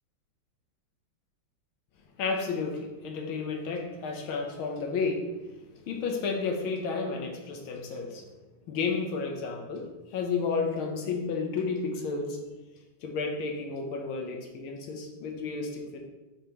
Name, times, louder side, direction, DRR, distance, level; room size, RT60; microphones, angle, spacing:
voice 1, 2.2-5.3 5.9-8.3 8.7-12.4 13.0-16.0, left 4 dB, 80° left, 3 dB, 1.7 m, -32 dB
6.4 x 5.2 x 3.0 m, 1.1 s
omnidirectional pair, 2.3 m